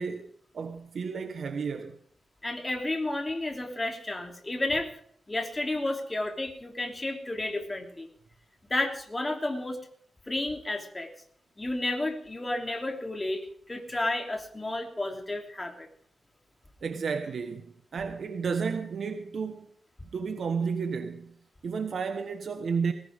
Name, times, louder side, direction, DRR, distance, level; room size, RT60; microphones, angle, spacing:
voice 1, 0.0-2.0 16.8-19.7 20.1-21.3 21.6-22.9, right 5 dB, 60° right, 1.3 m, -32 dB
voice 2, 2.4-4.9 5.3-8.1 8.7-9.8 10.3-11.1 11.6-15.9, left 2 dB, 20° left, 3.1 m, -31 dB
20.5 x 17.0 x 3.7 m
wide cardioid pair, 130°, 0 cm